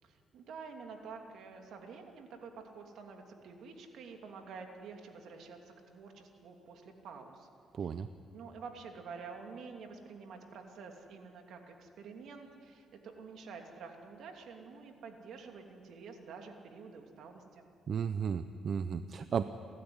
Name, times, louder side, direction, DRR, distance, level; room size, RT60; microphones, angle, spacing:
voice 1, 0.0-7.5 7.8-7.9 8.3-17.7, right 5 dB, 75° right, 3 dB, 2.8 m, -49 dB
voice 2, 7.7-8.1 17.9-19.4, right 7 dB, 55° right, 11 dB, 0.7 m, -34 dB
29.5 x 13.0 x 9.9 m, 2.5 s
cardioid pair, 90°, 0 cm